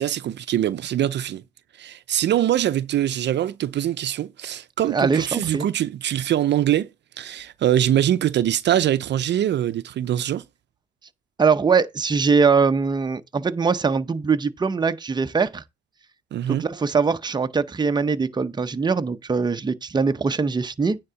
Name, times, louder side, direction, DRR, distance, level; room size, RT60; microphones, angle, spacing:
voice 1, 0.0-1.4 1.8-6.9 7.2-10.4 16.3-16.6, right 11 dB, 60° right, 0.6 m, -23 dB
voice 2, 4.9-5.7 11.4-15.6 16.5-21.0, right 5 dB, 20° right, 0.7 m, -22 dB
9.6 x 3.7 x 6.8 m
cardioid pair, 90°, 20 cm